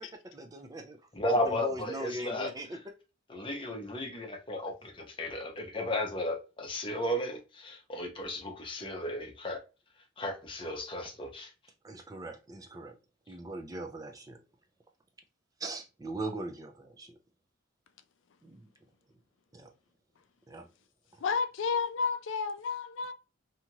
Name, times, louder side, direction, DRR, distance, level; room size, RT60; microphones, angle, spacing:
voice 1, 0.0-1.0 1.4-2.8 11.8-13.0 13.3-14.4 15.6-17.1 18.4-18.6 19.5-19.7 20.5-20.7, right 1 dB, 15° right, 0.3 m, -40 dB
voice 2, 1.1-2.5 3.3-9.6 10.2-11.5, left 1 dB, 25° left, 0.6 m, -34 dB
voice 3, 21.2-23.1, left 5 dB, 65° left, 0.4 m, -31 dB
2.7 x 2.4 x 2.8 m
head